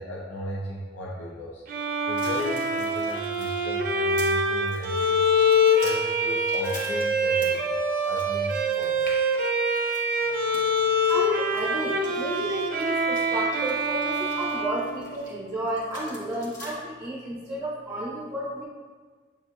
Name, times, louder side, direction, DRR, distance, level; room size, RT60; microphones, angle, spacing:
voice 1, 0.0-1.6 2.1-5.3 5.8-9.1, left 1 dB, 65° left, -4 dB, 0.5 m, -36 dB
Bowed string instrument, 1.7-15.6, left 1 dB, 50° right, 0.4 m, -25 dB
sound 1, 2.2-4.4 4.7-7.7 8.0-15.3 15.7-16.7, left 1 dB, 45° left, 0.9 m, -45 dB
voice 2, 11.1-18.6, right 1 dB, 20° right, -8 dB, 0.7 m, -32 dB
7.0 x 2.7 x 2.3 m, 1.5 s
head